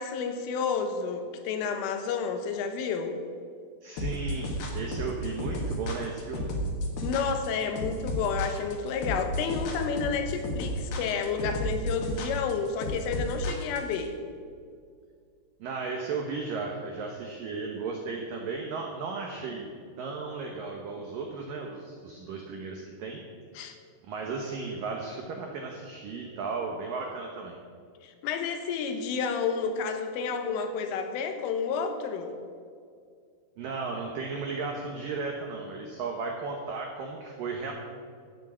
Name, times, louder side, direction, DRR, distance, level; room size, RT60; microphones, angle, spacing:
voice 1, 0.0-3.2 7.0-14.2 23.6-23.8 28.0-32.4, left 5 dB, 85° left, 6 dB, 3.7 m, -30 dB
voice 2, 3.8-6.5 15.6-19.7 20.0-23.2 24.1-27.6 33.6-37.7, right 4 dB, 85° right, 1 dB, 1.9 m, -35 dB
sound 1, 4.0-14.0, left 1 dB, 60° left, 3.2 m, -32 dB
12.0 x 9.3 x 7.4 m, 2.2 s
omnidirectional pair, 5.6 m